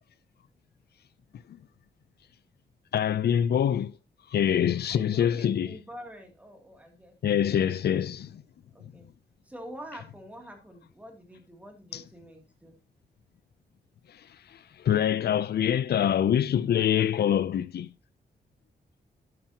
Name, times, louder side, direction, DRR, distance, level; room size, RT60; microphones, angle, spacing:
voice 1, 2.9-3.9 4.3-5.7 7.2-8.4 11.9-12.0 14.5-17.9, left 9 dB, 80° left, 0.5 m, -25 dB
voice 2, 4.9-8.0 8.7-9.1 9.4-12.7, equal, 10° right, 2.6 m, -46 dB
11.5 x 9.4 x 2.9 m
wide cardioid pair, 165°, 17 cm